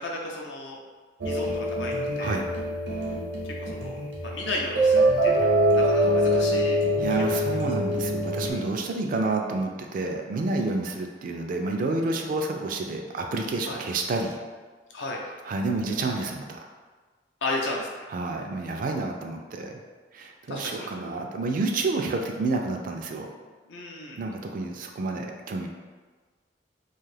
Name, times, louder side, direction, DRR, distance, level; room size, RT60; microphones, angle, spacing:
voice 1, 0.0-0.8 1.2-2.4 3.6-4.0 4.2-6.8 7.2-7.3 8.4-8.6 13.7-13.8 14.9-15.2 17.4-17.9 20.5-20.9 23.7-24.2, left 2 dB, 75° left, -1 dB, 0.5 m, -34 dB
sound 1, 1.2-8.5, right 1 dB, 80° right, 0.7 m, -24 dB
voice 2, 7.0-14.4 15.4-16.7 18.1-19.8 20.1-23.3 24.2-25.7, right 3 dB, 50° right, 3 dB, 0.3 m, -29 dB
2.5 x 2.3 x 3.2 m, 1.4 s
head